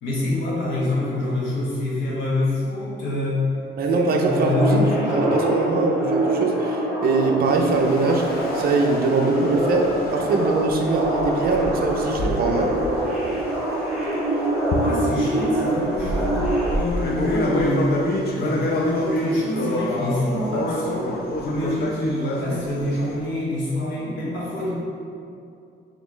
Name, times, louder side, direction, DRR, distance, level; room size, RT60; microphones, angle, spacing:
voice 1, 0.0-3.4 3.9-5.2 14.8-17.9 18.3-21.1 21.4-24.7, left 1 dB, 75° left, -7 dB, 1.3 m, -26 dB
voice 2, 3.8-8.3 8.5-12.8, right 3 dB, 50° right, 1 dB, 0.5 m, -22 dB
sound 1, 4.3-16.8, right 1 dB, 5° right, 1.0 m, -25 dB
sound 2, 7.4-14.2 14.7-23.2, left 1 dB, 50° left, 0.6 m, -28 dB
4.2 x 3.3 x 3.0 m, 2.5 s
cardioid pair, 115°, 20 cm